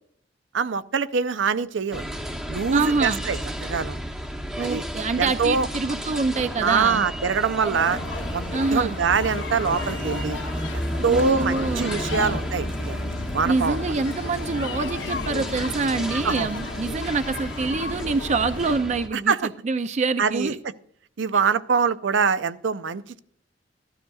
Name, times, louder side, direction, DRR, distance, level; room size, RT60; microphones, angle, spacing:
voice 1, 0.5-2.1 2.5-4.0 4.6-4.8 5.2-5.7 6.6-8.0 8.3-8.4 8.7-10.4 11.0-13.0 13.3-13.8 16.2-16.5 19.1-19.4 20.2-20.5 21.2-23.2, right 5 dB, 90° right, 14 dB, 0.5 m, -24 dB
sound 1, 1.9-19.1, equal, 5° right, 0.8 m, -32 dB
voice 2, 2.7-3.2 4.6-7.0 8.5-9.0 11.0-12.4 13.5-20.6, right 4 dB, 40° right, 11 dB, 0.4 m, -26 dB
sound 2, 7.8-18.8, left 3 dB, 80° left, 1.0 m, -34 dB
14.0 x 12.0 x 2.3 m, 0.62 s
head